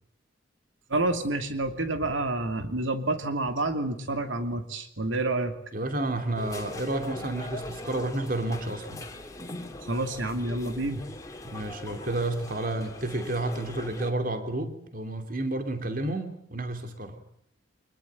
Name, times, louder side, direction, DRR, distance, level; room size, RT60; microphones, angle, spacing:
voice 1, 0.9-5.6 9.8-11.0, right 2 dB, 80° right, 7 dB, 2.7 m, -29 dB
voice 2, 5.7-9.1 11.4-17.2, right 2 dB, 45° right, 7 dB, 2.8 m, -31 dB
sound 1, 6.3-14.1, left 1 dB, 15° left, 2.8 m, -41 dB
25.0 x 21.0 x 9.5 m, 0.68 s
head